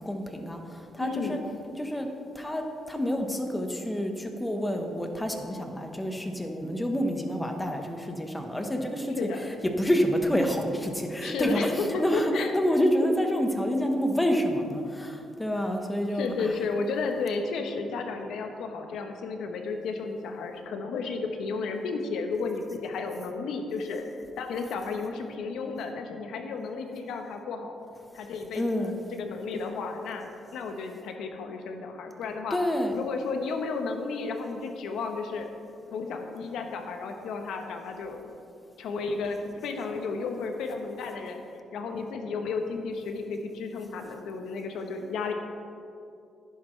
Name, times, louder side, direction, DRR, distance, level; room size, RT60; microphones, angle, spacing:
voice 1, 0.0-1.4 1.8-2.1 2.3-16.5 28.5-28.9 32.5-33.0, equal, 10° left, 4 dB, 1.1 m, -28 dB
voice 2, 1.0-1.4 9.2-9.5 11.2-12.5 16.1-27.8 28.1-32.6 32.9-35.5 35.9-38.2 38.8-41.4 41.7-45.3, left 4 dB, 80° left, 5 dB, 1.0 m, -33 dB
11.0 x 10.0 x 3.3 m, 2.6 s
cardioid pair, 90°, 0 cm